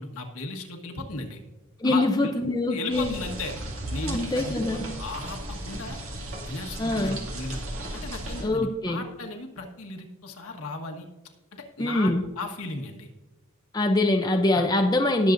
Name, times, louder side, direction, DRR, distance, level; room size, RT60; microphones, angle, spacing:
voice 1, 0.0-1.4 1.8-2.3 2.7-3.5 3.9-6.0 6.4-7.7 7.9-11.0 11.5-13.1 14.5-14.7, left 2 dB, 75° left, 2 dB, 1.5 m, -36 dB
voice 2, 1.8-3.1 4.0-4.9 6.8-7.2 8.4-9.0 11.8-12.2 13.7-15.3, left 2 dB, 20° left, 3 dB, 0.6 m, -24 dB
sound 1, 2.9-8.5, right 1 dB, 65° right, 2.2 m, -35 dB
19.0 x 7.2 x 2.6 m, 1.1 s
head